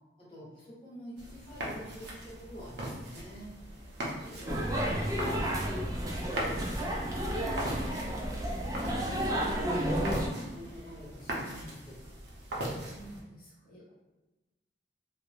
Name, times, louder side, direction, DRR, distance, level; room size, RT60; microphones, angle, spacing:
voice 1, 0.2-3.5 4.2-8.3 9.2-12.0, equal, 30° left, -7 dB, 0.9 m, -47 dB
sound 1, 1.2-13.2, right 1 dB, 65° right, 0.6 m, -40 dB
sound 2, 4.5-10.3, equal, 20° right, 0.3 m, -31 dB
voice 2, 12.8-13.9, right 1 dB, 55° left, -8 dB, 0.7 m, -50 dB
3.1 x 2.0 x 2.4 m, 1.1 s
head